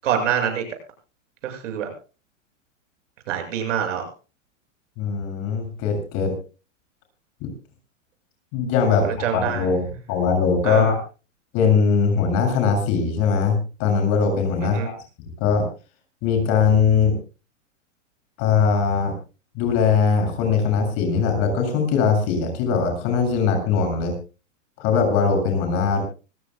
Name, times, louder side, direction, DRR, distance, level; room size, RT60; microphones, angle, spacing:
voice 1, 0.0-0.6 1.4-1.9 3.3-4.0 8.9-9.7 10.6-10.9 14.7-14.9, right 8 dB, 75° right, 4 dB, 7.1 m, -25 dB
voice 2, 5.0-6.3 7.4-7.5 8.5-11.0 11.5-14.9 15.4-15.6 16.2-17.1 18.4-19.1 19.5-24.1 24.8-26.0, left 5 dB, 40° left, 4 dB, 7.5 m, -21 dB
25.5 x 16.0 x 2.3 m, 0.34 s
supercardioid pair, 150°, 38 cm